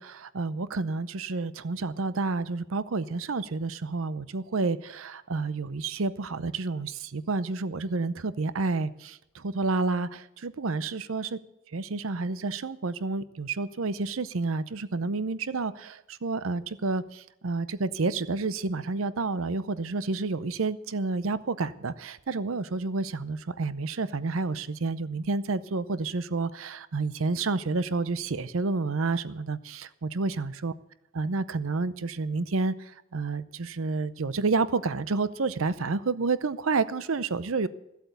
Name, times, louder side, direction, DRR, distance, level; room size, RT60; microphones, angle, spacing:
voice 1, 0.0-11.4 11.7-30.7 31.1-37.7, right 3 dB, 70° right, 15 dB, 0.7 m, -30 dB
15.0 x 8.2 x 8.0 m, 0.85 s
head